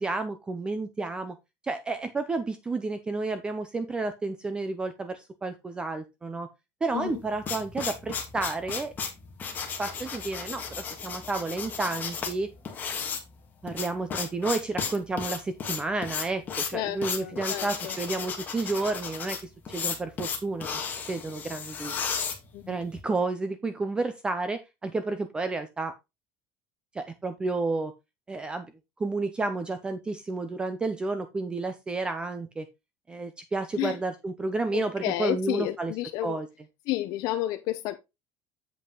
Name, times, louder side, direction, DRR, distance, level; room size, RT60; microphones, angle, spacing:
voice 1, 0.0-1.4 1.6-6.5 6.8-8.9 9.8-12.5 13.6-19.4 19.7-22.1 22.7-25.9 26.9-27.9 28.3-28.7 29.0-32.7 33.1-35.9 36.2-36.5, right 3 dB, 10° right, 0.5 m, -31 dB
sound 1, 7.1-23.0, left 6 dB, 20° left, 1.5 m, -34 dB
voice 2, 16.7-17.9 22.5-22.8 33.8-34.0 34.7-36.4 36.9-38.0, left 15 dB, 50° left, 0.6 m, -31 dB
7.7 x 5.3 x 3.8 m
cardioid pair, 175°, 8 cm